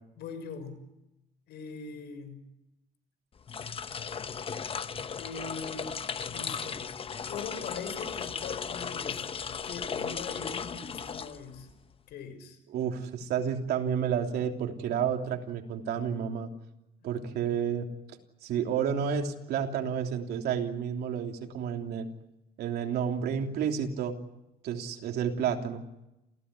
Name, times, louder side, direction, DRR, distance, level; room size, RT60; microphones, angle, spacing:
voice 1, 0.2-0.8 1.5-2.4 5.2-6.0 6.3-6.9 7.3-9.2 9.6-11.7 12.1-12.6, left 5 dB, 75° left, 10 dB, 6.2 m, -41 dB
sound 1, 3.4-11.8, left 6 dB, 35° left, 1.0 m, -36 dB
voice 2, 12.7-16.5 17.0-17.9 18.4-22.1 22.6-24.1 24.6-25.8, right 8 dB, 70° right, 4 dB, 3.2 m, -30 dB
28.5 x 16.0 x 9.9 m, 0.92 s
cardioid pair, 110°, 17 cm